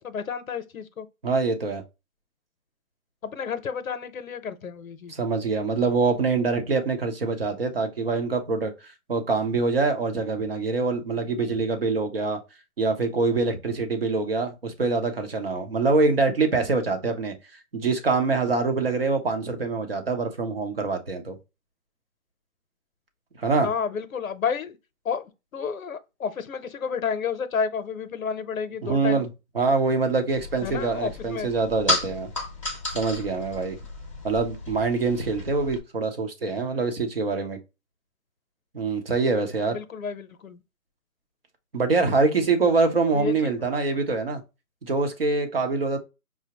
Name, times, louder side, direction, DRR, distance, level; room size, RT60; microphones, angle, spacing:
voice 1, 0.0-1.1 3.2-5.1 23.6-24.7 25.0-29.2 30.6-31.5 39.7-40.6 43.1-43.5, left 6 dB, 65° left, 0.7 m, -31 dB
voice 2, 1.2-1.8 5.1-8.7 9.1-12.4 12.8-17.3 17.7-21.4 23.4-23.7 28.8-29.3 29.5-32.3 32.9-33.8 34.2-37.6 38.7-39.8 41.7-44.4 44.8-46.0, right 4 dB, 40° right, 0.8 m, -24 dB
sound 1, 30.3-35.8, left 1 dB, 20° left, 0.7 m, -33 dB
5.8 x 2.1 x 2.8 m
hypercardioid pair, 165°, 44 cm